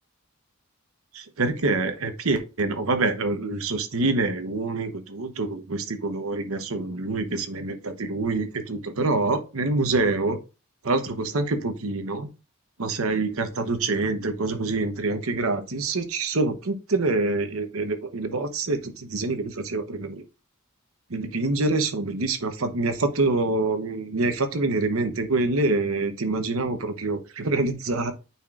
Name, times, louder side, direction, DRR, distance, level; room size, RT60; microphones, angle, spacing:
voice 1, 1.1-10.4 10.8-12.3 12.8-20.2 21.1-28.1, right 3 dB, 80° right, 8 dB, 1.0 m, -26 dB
9.1 x 4.3 x 2.5 m, 0.31 s
head